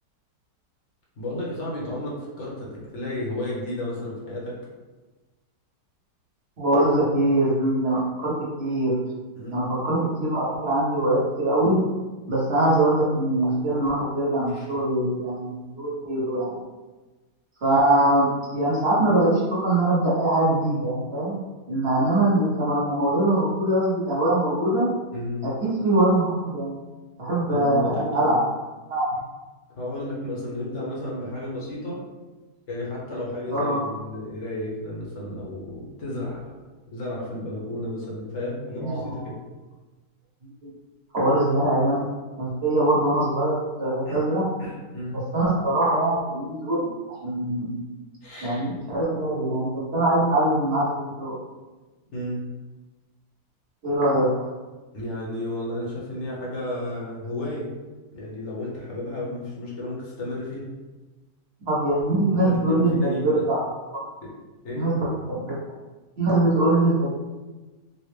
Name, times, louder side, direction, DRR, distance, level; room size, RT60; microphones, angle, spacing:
voice 1, 1.2-4.6 9.4-9.7 14.5-14.7 25.1-25.5 27.5-28.2 29.8-32.0 32.7-36.6 36.9-39.3 44.1-44.2 44.6-45.2 48.2-48.7 52.1-52.4 54.9-57.7 58.1-60.7 62.4-63.5 64.2-64.3 64.6-64.9, left 1 dB, 50° left, -5 dB, 1.0 m, -32 dB
voice 2, 6.6-8.3 8.6-9.0 9.5-11.8 12.3-16.5 17.6-21.4 21.7-24.9 25.4-26.8 27.2-28.4 28.9-29.0 33.5-33.8 38.8-39.3 40.6-40.7 41.1-42.1 42.4-44.5 45.1-46.9 47.2-47.8 48.4-51.4 53.8-54.3 61.7-63.6 63.9-64.1 64.7-65.6 66.2-67.1, right 1 dB, 45° right, -7 dB, 1.0 m, -22 dB
4.1 x 2.0 x 3.2 m, 1.2 s
omnidirectional pair, 1.8 m